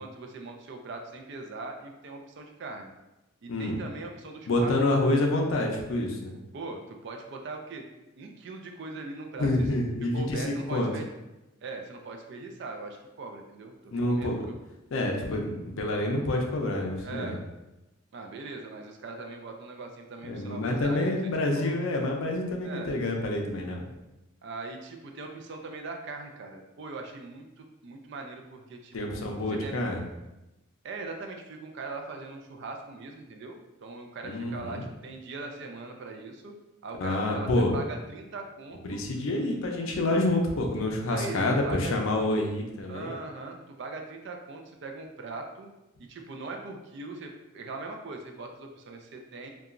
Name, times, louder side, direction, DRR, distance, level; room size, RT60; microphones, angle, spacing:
voice 1, 0.0-2.9 3.4-5.1 6.5-7.9 8.2-9.5 10.1-11.1 11.6-14.5 17.0-17.4 18.1-21.1 21.6-21.8 22.6-23.0 24.4-29.3 29.6-29.8 30.8-36.5 36.8-39.0 41.1-42.0 42.9-45.7 46.0-49.5, right 3 dB, 55° right, 3 dB, 0.3 m, -40 dB
voice 2, 3.5-3.8 4.5-6.3 9.4-10.9 13.9-14.4 14.9-17.4 20.2-23.9 28.9-30.0 34.2-34.9 37.0-37.8 38.8-43.2, left 1 dB, 75° left, 2 dB, 0.5 m, -27 dB
2.8 x 2.3 x 2.4 m, 0.99 s
head